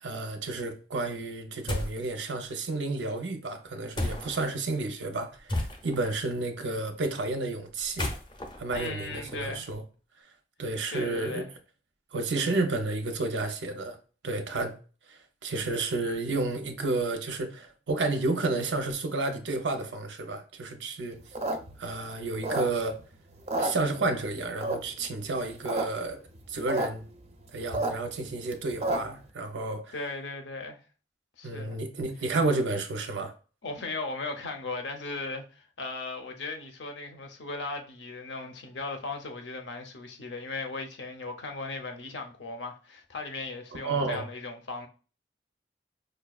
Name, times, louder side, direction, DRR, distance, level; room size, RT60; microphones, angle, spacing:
voice 1, 0.0-8.1 8.6-9.8 10.6-11.4 12.1-14.0 14.2-14.7 15.1-21.2 21.8-23.0 23.6-26.2 26.5-27.0 27.5-29.9 31.4-33.3 43.7-44.3, right 3 dB, 90° right, 0.6 m, -31 dB
sound 1, 1.7-2.1 4.0-4.5 5.5-6.1 7.8-9.7, left 1 dB, 25° left, 0.6 m, -33 dB
voice 2, 8.7-9.7 10.9-11.5 29.9-30.8 31.4-31.8 33.6-44.9, left 3 dB, 80° left, 0.7 m, -37 dB
sound 2, 21.2-23.0 23.4-24.3 24.6-25.1 25.5-25.8 26.1-26.2 26.4-26.9 27.2-29.2, right 2 dB, 35° right, 0.4 m, -30 dB
5.0 x 2.3 x 2.3 m
head